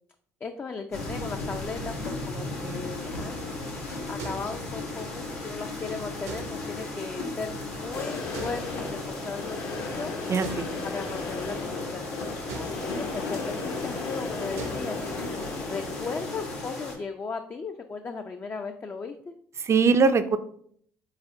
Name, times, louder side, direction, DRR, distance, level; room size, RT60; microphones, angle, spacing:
voice 1, 0.4-10.1 10.8-15.0 15.7-19.3, left 4 dB, 30° left, 5 dB, 0.4 m, -37 dB
sound 1, 0.9-16.9, left 2 dB, 90° left, 1.0 m, -36 dB
sound 2, 3.4-15.4, right 3 dB, 70° right, 0.7 m, -45 dB
sound 3, 7.9-16.6, left 3 dB, 60° left, 0.9 m, -36 dB
voice 2, 10.3-10.7 19.6-20.4, right 5 dB, 35° right, 11 dB, 0.4 m, -21 dB
4.0 x 4.0 x 2.7 m, 0.63 s
figure-of-eight pair, 50°, 8 cm